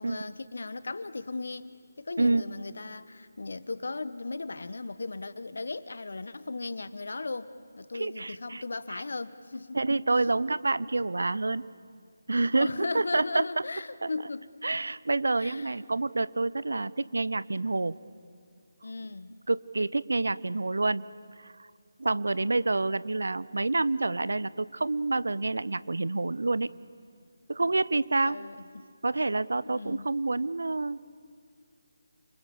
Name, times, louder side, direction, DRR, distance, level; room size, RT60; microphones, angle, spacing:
voice 1, 0.0-1.7 2.0-7.5 7.8-9.8 12.6-14.5 15.4-15.7 18.8-19.3 28.2-28.9 29.7-30.1, left 3 dB, 65° left, 1.3 m, -37 dB
voice 2, 7.9-8.6 8.9-9.0 9.7-11.7 12.3-13.4 14.0-14.1 14.6-17.9 19.5-21.0 21.4-21.7 22.0-26.7 27.5-28.4 29.0-31.1, right 2 dB, 70° right, 0.8 m, -28 dB
29.5 x 27.0 x 7.2 m
figure-of-eight pair, 155°, 0 cm